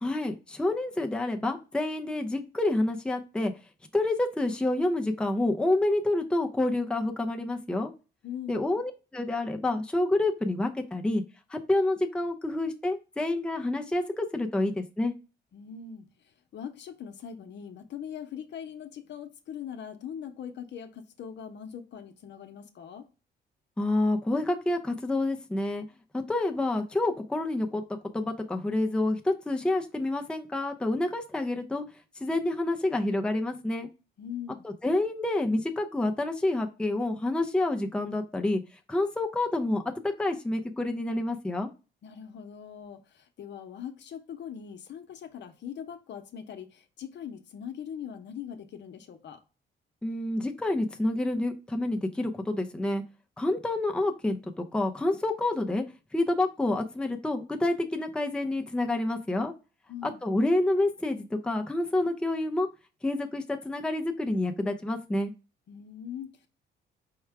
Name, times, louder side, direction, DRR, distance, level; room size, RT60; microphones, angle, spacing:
voice 1, 0.0-3.5 3.9-7.9 8.5-11.2 11.5-15.1 23.8-25.8 26.3-27.8 28.1-31.8 32.2-33.9 34.6-38.6 38.9-41.7 50.0-53.0 53.4-55.8 56.1-59.5 60.0-62.7 63.0-65.3, left 2 dB, 5° left, 0.6 m, -28 dB
voice 2, 8.2-8.7 15.5-23.1 34.2-34.7 42.0-49.4 59.9-60.2 65.7-66.5, left 8 dB, 65° left, 0.8 m, -41 dB
4.6 x 2.2 x 4.6 m
cardioid pair, 90°, 20 cm